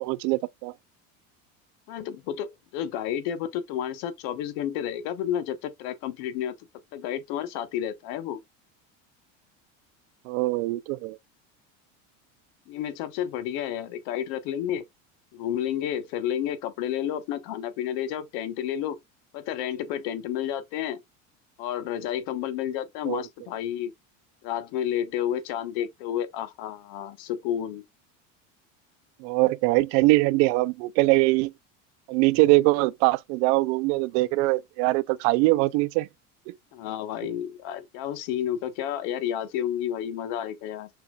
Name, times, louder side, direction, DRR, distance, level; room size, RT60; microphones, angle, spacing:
voice 1, 0.0-0.7 10.3-11.2 23.1-23.2 29.2-31.5 32.1-36.1 36.5-36.6, right 21 dB, 70° right, 0.5 m, -22 dB
voice 2, 1.9-6.5 6.9-8.4 12.7-14.8 15.3-19.0 19.3-21.0 21.6-23.9 24.4-27.8 36.7-40.9, left 10 dB, 70° left, 1.1 m, -31 dB
5.9 x 3.5 x 2.3 m
supercardioid pair, 120°, 38 cm